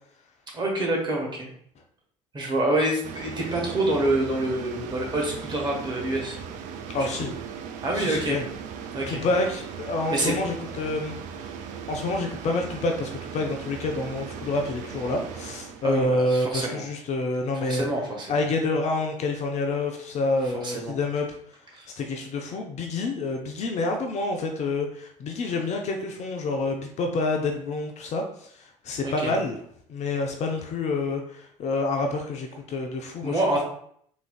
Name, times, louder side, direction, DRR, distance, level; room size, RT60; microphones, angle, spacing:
voice 1, 0.5-1.5 2.3-6.4 7.0-7.1 7.8-8.4 8.9-9.2 10.1-10.3 15.8-16.8 17.5-18.4 20.6-21.0 21.7-21.9 29.0-29.3 33.2-33.7, right 1 dB, 25° right, -1 dB, 1.3 m, -27 dB
sound 1, 3.0-16.0, right 7 dB, 50° right, 0.4 m, -38 dB
voice 2, 6.9-7.3 7.9-8.5 9.1-11.2 11.4-11.5 11.9-17.9 18.3-21.4 21.9-29.6 29.9-33.4, left 2 dB, 45° left, 3 dB, 0.5 m, -28 dB
3.6 x 3.1 x 2.4 m, 0.65 s
figure-of-eight pair, 60°, 17 cm